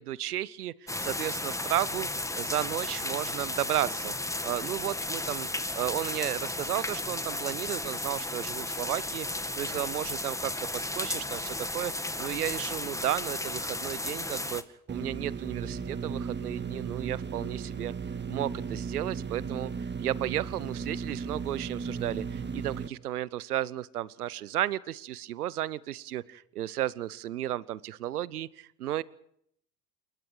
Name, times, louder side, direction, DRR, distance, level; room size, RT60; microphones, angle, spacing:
voice 1, 0.0-2.1 2.3-4.1 4.4-5.5 5.7-9.3 9.5-11.9 12.2-14.6 14.9-17.9 18.3-29.0, right 13 dB, 80° right, 22 dB, 1.0 m, -33 dB
sound 1, 0.9-14.6, left 2 dB, 5° left, 1.8 m, -34 dB
sound 2, 14.9-22.9, right 6 dB, 25° right, 1.8 m, -35 dB
28.5 x 22.0 x 4.7 m, 0.70 s
hypercardioid pair, 65°, 44 cm